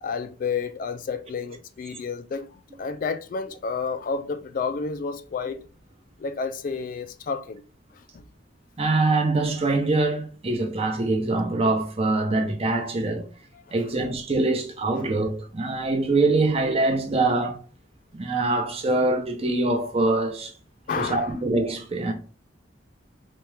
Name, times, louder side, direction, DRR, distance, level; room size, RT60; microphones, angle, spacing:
voice 1, 0.0-5.7 6.2-7.6 7.9-8.2 13.7-13.8 15.0-15.1 20.9-21.3, left 5 dB, 45° left, 0.3 m, -31 dB
voice 2, 8.8-13.2 13.7-17.6 18.1-20.5 21.0-22.1, right 2 dB, 35° right, 0.8 m, -24 dB
4.2 x 2.3 x 3.3 m
head